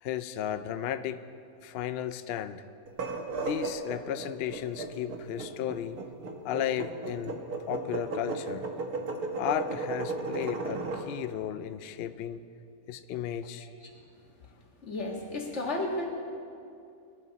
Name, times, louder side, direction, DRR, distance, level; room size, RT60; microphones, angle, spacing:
voice 1, 0.0-1.2 1.6-2.6 3.4-6.0 6.4-7.4 7.7-8.7 9.4-12.4 12.9-13.7, left 10 dB, 80° left, 12 dB, 0.5 m, -34 dB
sound 1, 2.9-11.1, right 3 dB, 80° right, 1.7 m, -35 dB
voice 2, 14.8-16.1, left 2 dB, 50° left, 0 dB, 2.1 m, -32 dB
21.5 x 11.5 x 4.1 m, 2.5 s
omnidirectional pair, 1.6 m